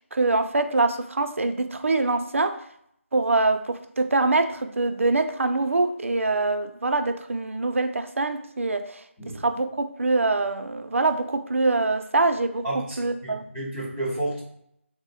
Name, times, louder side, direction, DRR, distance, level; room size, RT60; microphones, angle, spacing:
voice 1, 0.0-2.6 3.1-9.0 9.3-13.4, right 3 dB, 75° right, 8 dB, 0.4 m, -24 dB
voice 2, 12.6-14.4, right 1 dB, 5° left, -13 dB, 0.4 m, -31 dB
3.4 x 2.1 x 3.9 m, 0.73 s
figure-of-eight pair, 175°, 7 cm